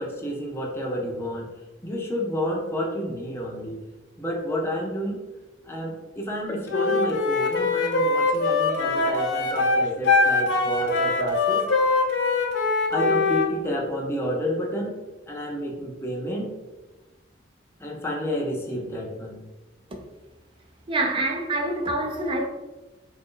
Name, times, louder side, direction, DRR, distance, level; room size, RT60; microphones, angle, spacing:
voice 1, 0.0-1.5 1.8-3.8 4.2-5.2 5.6-12.0 12.9-15.0 15.3-16.5 17.8-19.4, equal, 15° left, 0.6 m, -30 dB
Wind instrument woodwind instrument, 6.7-13.5, left 3 dB, 80° left, 0.6 m, -22 dB
voice 2, 20.9-22.5, right 2 dB, 30° right, 0.6 m, -26 dB
3.0 x 2.6 x 3.7 m
head